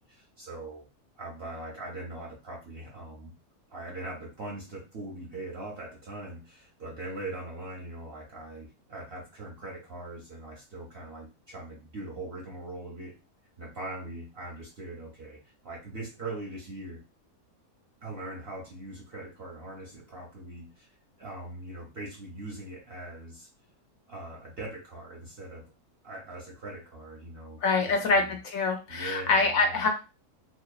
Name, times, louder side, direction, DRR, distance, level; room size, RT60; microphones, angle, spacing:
voice 1, 0.1-0.9 1.2-3.3 3.7-13.2 13.6-17.0 18.0-20.9 21.2-23.5 24.1-25.6 26.0-28.3 28.9-29.8, right 2 dB, 55° right, -2 dB, 0.7 m, -41 dB
voice 2, 27.6-29.9, left 3 dB, 70° left, 3 dB, 1.0 m, -25 dB
2.9 x 2.0 x 2.3 m, 0.29 s
omnidirectional pair, 1.6 m